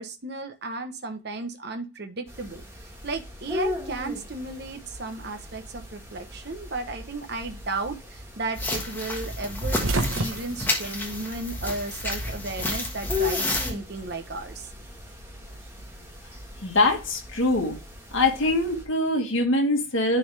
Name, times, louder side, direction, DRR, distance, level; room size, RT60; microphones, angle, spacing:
voice 1, 0.0-2.6 3.0-14.7, right 3 dB, 50° right, 6 dB, 0.9 m, -34 dB
sound 1, 2.3-18.9, left 4 dB, 10° right, 1.7 m, -38 dB
sound 2, 8.5-13.7, left 1 dB, 10° left, 1.4 m, -30 dB
sound 3, 9.5-12.0 12.3-13.4 14.6-16.0, right 2 dB, 75° right, 1.1 m, -31 dB
voice 2, 16.6-17.8 18.1-20.2, left 2 dB, 65° left, 2 dB, 2.0 m, -23 dB
10.5 x 3.6 x 3.3 m, 0.32 s
head